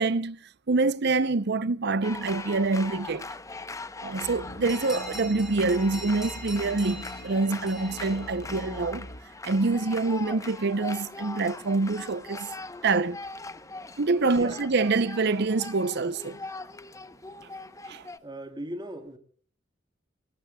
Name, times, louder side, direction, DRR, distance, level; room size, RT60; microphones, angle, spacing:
voice 1, 0.0-3.3 4.0-9.1 9.4-12.5 12.8-13.2 14.0-16.4 17.9-18.0, right 3 dB, 60° right, 0.7 m, -26 dB
sound 1, 2.0-18.2, left 3 dB, 15° left, 0.8 m, -41 dB
sound 2, 4.2-9.2, left 1 dB, 50° left, 1.0 m, -43 dB
sound 3, 4.7-8.9, right 1 dB, ahead, 5.1 m, -44 dB
voice 2, 14.2-14.6 18.2-19.2, right 1 dB, 25° right, 3.0 m, -38 dB
29.5 x 19.0 x 2.3 m
head